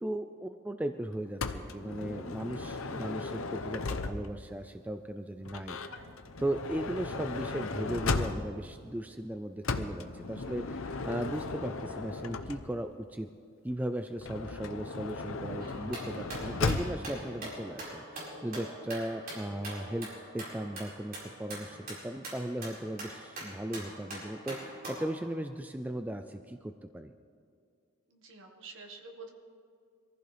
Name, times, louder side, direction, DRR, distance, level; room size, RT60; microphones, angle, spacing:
voice 1, 0.0-5.8 6.4-13.3 13.6-20.1 20.3-27.1, right 1 dB, 5° right, 7 dB, 0.3 m, -37 dB
Motor vehicle (road) / Sliding door, 1.4-4.5 5.4-8.7 9.6-12.9 14.2-17.1, left 3 dB, 70° left, 0.8 m, -36 dB
voice 2, 5.8-6.2 28.1-29.3, right 3 dB, 60° right, 2 dB, 1.7 m, -49 dB
sound 1, 15.6-25.2, right 1 dB, 45° right, 4.9 m, -43 dB
23.0 x 15.0 x 3.4 m, 2.3 s
head